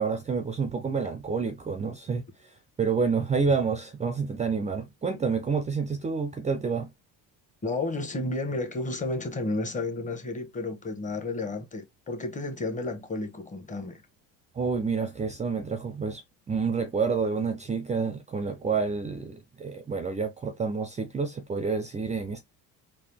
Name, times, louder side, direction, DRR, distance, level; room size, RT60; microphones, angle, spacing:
voice 1, 0.0-6.9 14.5-16.2 16.5-22.4, right 5 dB, 20° right, 0.5 m, -29 dB
voice 2, 7.6-14.0, left 2 dB, 20° left, 1.2 m, -32 dB
3.8 x 2.5 x 3.4 m
cardioid pair, 115°, 36 cm